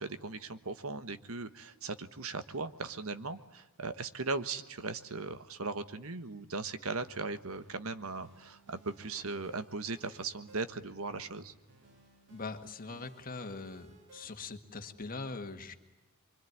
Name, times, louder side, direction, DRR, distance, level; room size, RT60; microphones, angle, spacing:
voice 1, 0.0-11.5, right 3 dB, 75° right, 11 dB, 1.3 m, -38 dB
sound 1, 6.9-14.3, right 2 dB, 55° right, 3.9 m, -60 dB
voice 2, 12.3-15.8, left 3 dB, 40° left, 7 dB, 1.8 m, -42 dB
25.0 x 24.5 x 9.6 m, 1.0 s
head